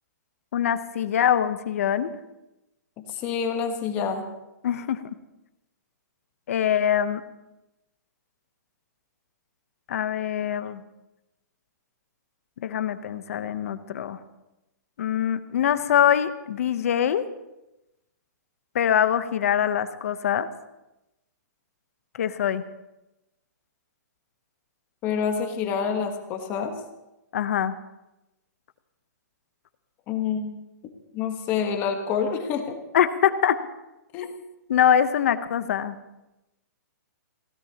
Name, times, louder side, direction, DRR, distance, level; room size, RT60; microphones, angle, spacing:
voice 1, 0.5-2.1 4.6-5.1 6.5-7.2 9.9-10.8 12.6-14.2 15.0-17.2 18.7-20.5 22.2-22.6 27.3-27.8 32.9-33.5 34.7-36.0, left 9 dB, 50° left, 12 dB, 0.9 m, -23 dB
voice 2, 3.1-4.2 25.0-26.7 30.1-30.6 31.1-32.8 34.1-34.3, left 6 dB, 20° left, 5 dB, 1.2 m, -27 dB
22.0 x 16.5 x 2.9 m, 0.96 s
hypercardioid pair, 170°, 10 cm